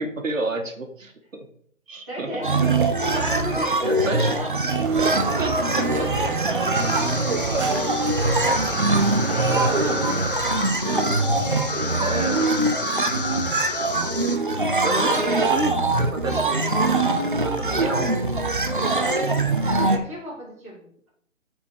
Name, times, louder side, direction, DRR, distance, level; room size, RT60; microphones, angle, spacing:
voice 1, 0.0-1.5 1.9-2.3 2.9-3.1 3.8-4.3 5.0-6.1 6.9-7.1 9.5-10.1 12.0-12.5 14.8-18.2, right 2 dB, 70° right, 5 dB, 1.8 m, -30 dB
voice 2, 2.0-2.7 3.0-4.6 5.1-6.1 6.3-10.2 10.8-12.6 15.2-15.4 18.7-19.3 19.6-21.1, right 1 dB, 15° right, -8 dB, 2.2 m, -35 dB
sound 1, 2.4-20.0, right 2 dB, 40° right, 0.7 m, -23 dB
sound 2, 4.8-10.4, right 7 dB, 90° right, 0.7 m, -32 dB
sound 3, 6.7-14.4, left 3 dB, 40° left, 0.6 m, -31 dB
8.9 x 4.4 x 4.6 m, 0.65 s
hypercardioid pair, 175°, 41 cm